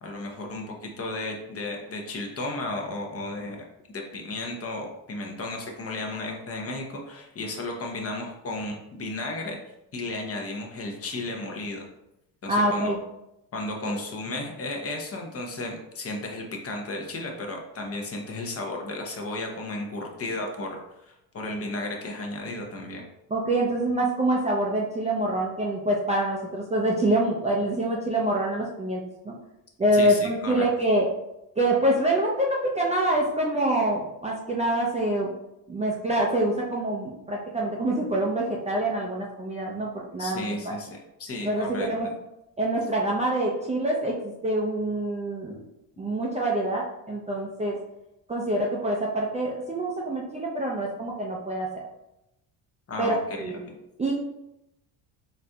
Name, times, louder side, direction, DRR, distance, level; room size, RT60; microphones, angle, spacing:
voice 1, 0.0-3.7 3.9-9.6 9.9-11.9 12.4-12.9 13.5-20.8 21.1-23.1 29.9-30.7 40.2-41.9 52.9-53.8, left 2 dB, 35° left, 1 dB, 0.7 m, -34 dB
voice 2, 12.5-13.0 23.3-29.3 29.8-31.1 31.6-35.3 35.7-40.7 41.4-42.1 42.6-45.6 46.0-47.8 48.3-51.8 53.0-53.6 54.0-54.1, right 1 dB, 15° right, -3 dB, 0.4 m, -26 dB
4.1 x 2.6 x 2.3 m, 0.87 s
cardioid pair, 100°, 42 cm